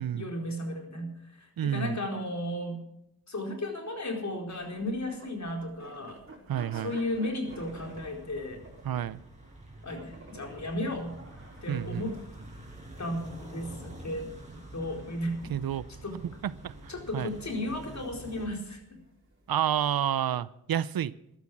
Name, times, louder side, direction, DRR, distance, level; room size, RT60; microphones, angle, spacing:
voice 1, 0.0-2.8 3.3-6.2 6.7-8.6 9.8-11.1 11.6-12.1 13.0-14.3 14.6-15.4 16.0-16.2 16.9-19.0, left 1 dB, 50° left, 3 dB, 4.4 m, -34 dB
voice 2, 1.6-2.0 6.5-6.9 8.8-9.2 11.7-12.1 15.5-15.9 16.4-17.3 19.5-21.1, right 10 dB, 75° right, 19 dB, 0.7 m, -30 dB
sound 1, 4.5-19.8, right 2 dB, 35° right, 5.2 m, -52 dB
sound 2, 7.5-18.5, right 1 dB, 20° right, 6.6 m, -47 dB
14.0 x 12.5 x 6.0 m, 0.81 s
cardioid pair, 70°, 36 cm